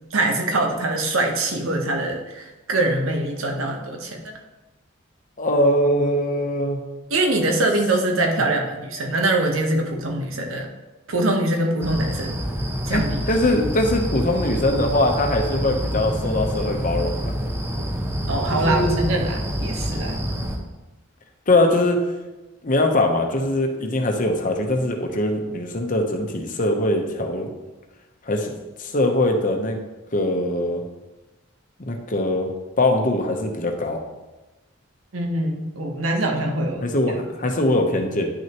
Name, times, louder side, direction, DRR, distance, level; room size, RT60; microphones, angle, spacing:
voice 1, 0.1-4.3 7.1-10.7 11.1-12.4 12.9-13.4 18.3-20.2 35.1-36.9, right 2 dB, 85° right, 2 dB, 1.1 m, -23 dB
voice 2, 5.4-6.8 12.9-17.3 18.5-19.0 21.5-22.0 22.6-27.5 28.3-29.8 30.1-30.8 31.8-32.5 32.8-34.0 36.8-38.3, left 1 dB, 40° left, 3 dB, 0.9 m, -22 dB
sound 1, 11.8-20.6, equal, 15° right, 0.7 m, -27 dB
9.9 x 6.2 x 3.0 m, 1.1 s
head